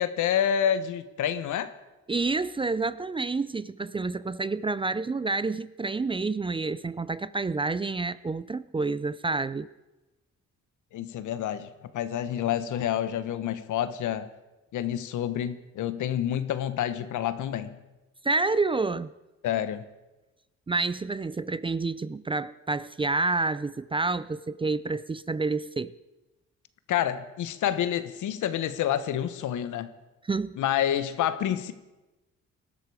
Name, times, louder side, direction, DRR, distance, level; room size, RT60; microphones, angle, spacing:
voice 1, 0.0-1.7 10.9-14.3 14.7-17.8 19.4-19.8 26.9-29.9 30.6-31.7, left 10 dB, 80° left, 12 dB, 1.2 m, -28 dB
voice 2, 2.1-9.7 18.2-19.1 20.7-25.9 30.2-30.6, right 3 dB, 20° right, 17 dB, 0.4 m, -28 dB
19.0 x 12.5 x 4.9 m, 1.1 s
cardioid pair, 90°, 30 cm